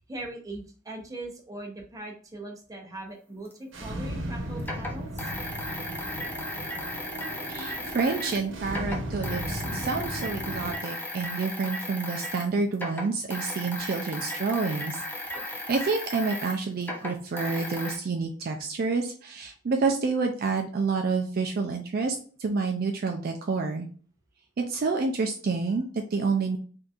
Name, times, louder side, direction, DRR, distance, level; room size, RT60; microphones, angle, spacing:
voice 1, 0.0-5.3, right 2 dB, 20° right, 0 dB, 0.8 m, -40 dB
sound 1, 3.5-3.6 4.6-8.4 8.7-12.5 12.7-18.0, left 1 dB, 10° left, 0.5 m, -36 dB
sound 2, 3.7-10.8, equal, 85° right, 0.9 m, -36 dB
voice 2, 7.5-15.0 15.7-23.9 24.6-26.6, right 4 dB, 50° right, 3 dB, 0.4 m, -28 dB
3.7 x 2.7 x 2.4 m, 0.42 s
head